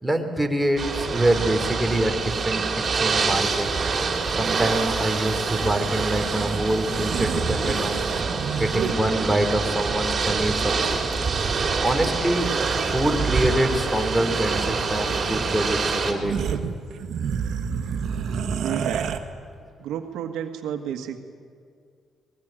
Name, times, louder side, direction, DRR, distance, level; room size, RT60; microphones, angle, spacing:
voice 1, 0.0-3.7 4.4-8.0 8.6-11.0 11.8-12.5 12.8-16.4, right 1 dB, 5° right, 3 dB, 3.1 m, -25 dB
Ocean / Boat Water vehicle, 0.8-16.1, right 4 dB, 40° right, 4.0 m, -26 dB
sound 1, 4.3-9.1 10.5-10.6 10.8-11.5 11.9-12.4 12.8-13.6 13.9-14.1 15.2-15.3 15.7-15.8 16.1-19.2, right 7 dB, 65° right, 1.8 m, -30 dB
voice 2, 18.6-19.1 19.8-21.2, right 9 dB, 85° right, 6 dB, 1.7 m, -31 dB
24.5 x 20.5 x 9.0 m, 2.2 s
cardioid pair, 90°, 0 cm